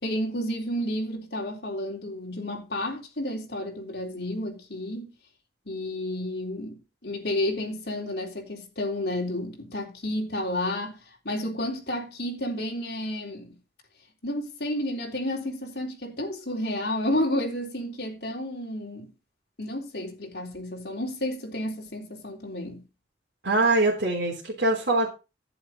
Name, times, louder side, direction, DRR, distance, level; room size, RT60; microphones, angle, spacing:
voice 1, 0.0-5.1 5.7-13.6 14.2-19.1 19.6-22.8, left 1 dB, 60° left, 3.7 m, -31 dB
voice 2, 23.4-25.1, right 2 dB, 65° right, 3.4 m, -23 dB
11.0 x 9.2 x 4.0 m
head